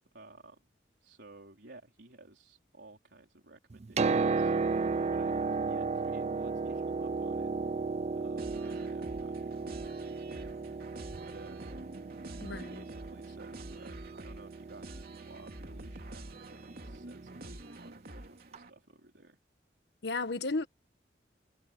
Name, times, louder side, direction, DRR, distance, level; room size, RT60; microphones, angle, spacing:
voice 1, 0.1-0.6 1.0-10.5 11.2-11.6 12.4-19.4, right 2 dB, 75° right, 4.1 m, -55 dB
Piano, 3.7-17.4 18.5-18.6, right 4 dB, 40° right, 0.4 m, -34 dB
sound 1, 8.4-18.7, right 1 dB, 60° right, 3.1 m, -48 dB
voice 2, 12.4-12.7 20.0-20.7, left 3 dB, 70° left, 1.4 m, -33 dB
head